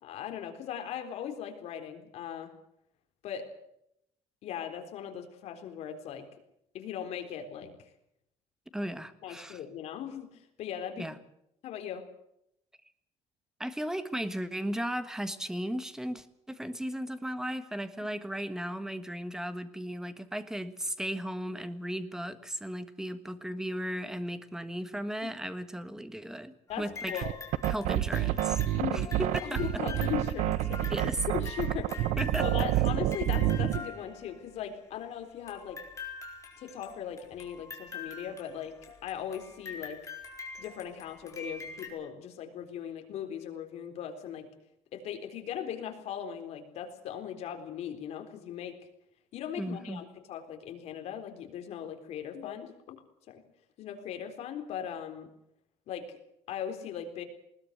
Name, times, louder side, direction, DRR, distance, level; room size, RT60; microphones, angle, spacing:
voice 1, 0.0-2.5 3.2-3.5 4.4-6.3 6.7-7.7 9.2-11.1 11.6-12.1 26.7-27.4 28.8-29.1 29.4-32.0 32.4-35.8 36.6-38.7 39.0-40.0 40.6-44.5 44.9-48.7 49.3-53.0 53.3-53.4 53.8-55.3 55.9-56.2 56.5-57.2, left 9 dB, 65° left, 5 dB, 3.9 m, -39 dB
voice 2, 8.7-9.6 11.0-11.1 13.6-27.2 27.7-28.6 28.9-29.6 30.9-31.2 32.2-32.5 32.7-32.8 49.6-50.0, equal, 5° right, 11 dB, 1.4 m, -36 dB
sound 1, 26.7-34.6 35.5-41.9, left 4 dB, 25° left, 4.6 m, -45 dB
sound 2, 27.2-33.9, right 13 dB, 80° right, 0.9 m, -28 dB
20.5 x 19.5 x 8.0 m, 0.77 s
cardioid pair, 155°, 12 cm